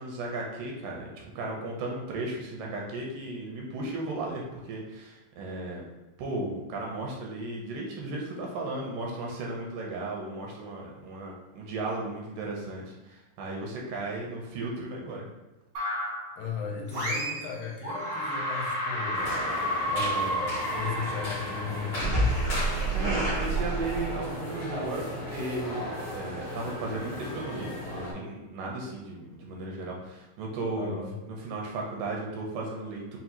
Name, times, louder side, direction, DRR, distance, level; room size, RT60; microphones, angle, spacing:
voice 1, 0.0-5.8 6.2-15.3 22.9-33.2, right 2 dB, 80° right, -1 dB, 2.1 m, -35 dB
sound 1, 15.7-16.3 16.9-17.5 17.8-24.3, right 1 dB, 65° right, 1.1 m, -30 dB
voice 2, 16.4-19.5 19.9-22.3 30.8-31.1, left 6 dB, 80° left, -1 dB, 2.2 m, -36 dB
sound 2, 19.1-28.1, left 1 dB, 60° left, 0.9 m, -36 dB
5.6 x 2.3 x 2.8 m, 1.1 s
omnidirectional pair, 4.0 m